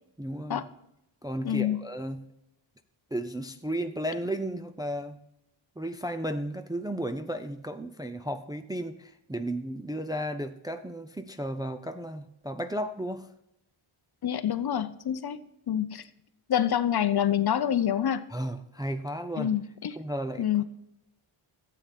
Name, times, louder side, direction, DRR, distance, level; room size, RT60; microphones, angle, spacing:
voice 1, 0.2-0.6 1.2-2.2 3.1-5.2 5.8-13.3 18.3-19.5 20.0-20.6, right 1 dB, 10° right, 0.4 m, -34 dB
voice 2, 1.4-1.8 14.2-16.0 16.5-18.3 19.4-20.0 20.4-20.6, left 10 dB, 50° left, 0.6 m, -27 dB
13.0 x 8.4 x 4.2 m
wide cardioid pair, 125°, 50 cm